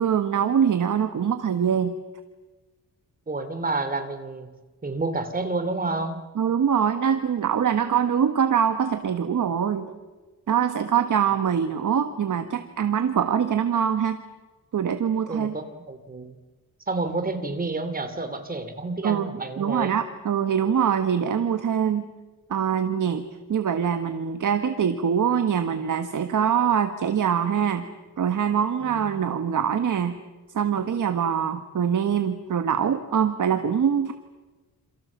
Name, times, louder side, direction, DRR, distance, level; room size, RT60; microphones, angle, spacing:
voice 1, 0.0-1.9 6.3-9.9 10.5-14.2 14.7-15.5 19.0-22.1 22.5-23.2 23.5-27.8 28.2-30.1 30.5-34.1, right 8 dB, 60° right, 8 dB, 1.6 m, -23 dB
voice 2, 3.3-4.5 4.8-6.3 15.3-16.3 16.9-19.9 28.8-29.0, right 3 dB, 25° right, 8 dB, 2.8 m, -29 dB
28.0 x 27.5 x 7.4 m, 1.2 s
wide cardioid pair, 165°, 35 cm